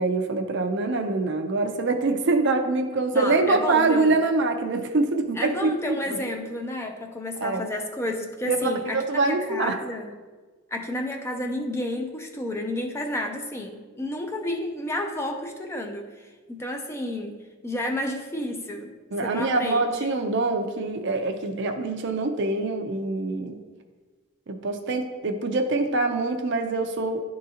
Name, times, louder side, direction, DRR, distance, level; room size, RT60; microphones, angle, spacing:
voice 1, 0.0-6.0 7.4-7.6 8.5-9.8 19.1-23.6 24.5-27.2, right 3 dB, 55° right, 5 dB, 0.5 m, -24 dB
voice 2, 3.1-4.2 5.4-10.1 10.7-17.4 17.6-18.9 19.2-20.1, left 1 dB, 10° left, 3 dB, 0.4 m, -31 dB
11.0 x 3.7 x 2.8 m, 1.4 s
head